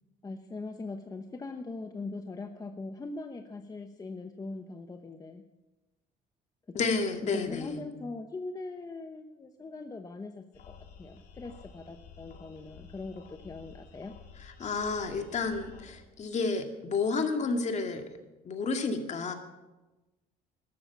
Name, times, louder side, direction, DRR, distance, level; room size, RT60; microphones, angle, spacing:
voice 1, 0.2-5.4 6.9-7.0 7.2-14.1, left 3 dB, 20° left, 6 dB, 1.0 m, -41 dB
voice 2, 6.7-7.8 14.6-18.0 18.4-19.3, left 4 dB, 45° left, 5 dB, 2.2 m, -30 dB
sound 1, 10.5-15.8, left 6 dB, 60° left, 3.2 m, -52 dB
13.0 x 13.0 x 7.2 m, 1.1 s
cardioid pair, 110°, 17 cm